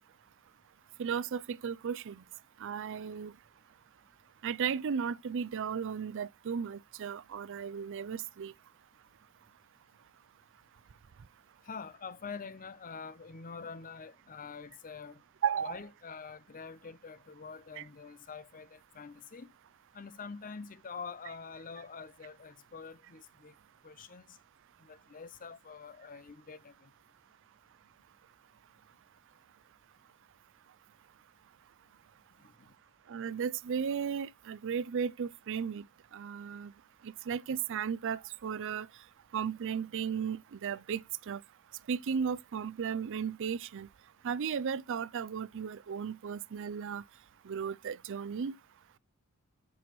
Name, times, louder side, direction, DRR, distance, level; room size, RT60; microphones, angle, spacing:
voice 1, 1.0-2.2 2.6-3.3 4.4-8.5 15.4-15.8 17.8-17.9 33.1-35.9 36.1-36.7 37.0-38.9 39.3-41.0 41.3-41.4 41.9-43.9 44.2-47.0 47.4-48.6, right 7 dB, 60° right, 0.4 m, -35 dB
voice 2, 11.6-15.2 15.6-19.5 19.9-23.5 23.8-24.4 24.8-26.9 32.6-32.7, left 5 dB, 40° left, 0.6 m, -46 dB
13.5 x 6.1 x 3.1 m
head